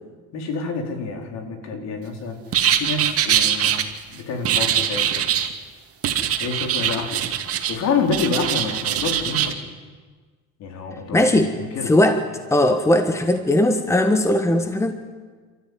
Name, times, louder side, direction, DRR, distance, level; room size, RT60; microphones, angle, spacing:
voice 1, 0.3-2.4 2.7-3.7 4.1-5.3 6.4-7.2 7.7-9.6 10.6-11.9, left 4 dB, 60° left, 4 dB, 4.5 m, -27 dB
sound 1, 2.5-3.8 4.4-5.5 6.0-7.8 8.1-9.5, right 10 dB, 50° right, 2.3 m, -22 dB
voice 2, 11.1-11.5 11.8-12.2 12.5-14.9, left 1 dB, 10° left, 7 dB, 1.5 m, -18 dB
29.0 x 13.5 x 9.6 m, 1.5 s
cardioid pair, 120°, 30 cm